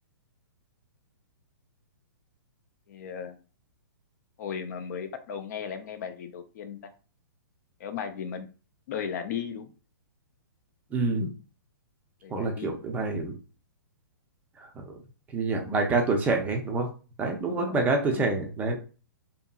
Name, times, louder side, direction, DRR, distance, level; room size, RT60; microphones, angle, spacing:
voice 1, 2.9-3.4 4.4-6.8 7.8-8.5 8.9-9.7 12.2-12.8 17.5-17.7 18.1-18.2, left 7 dB, 50° left, 8 dB, 0.5 m, -36 dB
voice 2, 10.9-11.3 12.3-13.3 14.6-15.0 15.3-16.9 17.2-18.8, right 3 dB, 15° right, 2 dB, 0.5 m, -27 dB
2.8 x 2.6 x 2.3 m, 0.36 s
hypercardioid pair, 145°, 12 cm